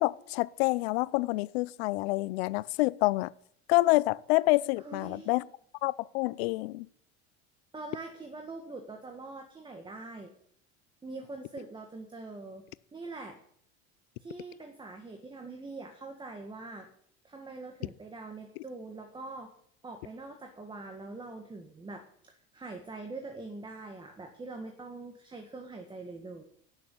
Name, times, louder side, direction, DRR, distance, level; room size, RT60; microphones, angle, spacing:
voice 1, 0.0-3.3 3.7-5.4 5.8-6.9, left 21 dB, 85° left, 0.5 m, -27 dB
voice 2, 4.8-5.4 7.7-10.3 11.0-12.6 12.9-13.4 14.2-16.9 17.2-19.5 19.8-26.4, right 3 dB, 15° right, 1.8 m, -43 dB
12.5 x 7.0 x 8.5 m
supercardioid pair, 125°, 30 cm